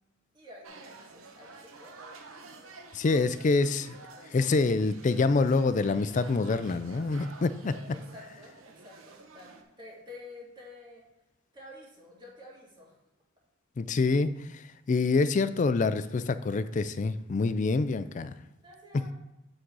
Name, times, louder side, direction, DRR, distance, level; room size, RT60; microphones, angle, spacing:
voice 1, 0.3-1.1 1.4-2.0 7.9-11.1 11.5-13.0 18.6-19.1, left 2 dB, 25° right, -4 dB, 1.9 m, -49 dB
sound 1, 0.6-9.6, right 3 dB, 90° right, 0.9 m, -50 dB
voice 2, 2.9-4.0 4.3-7.8 13.8-14.6 14.9-18.3, left 3 dB, 40° left, 13 dB, 0.3 m, -26 dB
8.7 x 3.8 x 4.7 m, 0.93 s
head